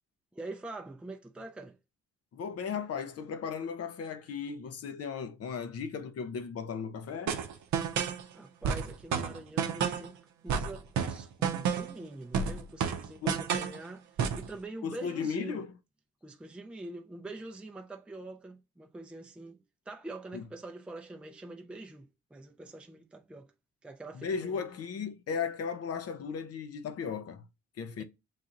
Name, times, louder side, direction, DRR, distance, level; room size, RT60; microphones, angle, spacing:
voice 1, 0.3-1.8 8.3-15.6 16.2-23.5 23.8-24.7 28.0-28.1, right 2 dB, 5° right, 0.5 m, -45 dB
voice 2, 2.3-7.4 13.2-13.4 14.8-15.7 20.3-20.4 24.2-27.4 27.8-28.0, left 6 dB, 55° left, 0.6 m, -36 dB
sound 1, 7.3-8.2 8.6-10.1 10.5-12.0 12.3-13.8 14.2-14.5, right 7 dB, 70° right, 0.6 m, -30 dB
7.3 x 2.7 x 2.5 m
cardioid pair, 90°, 30 cm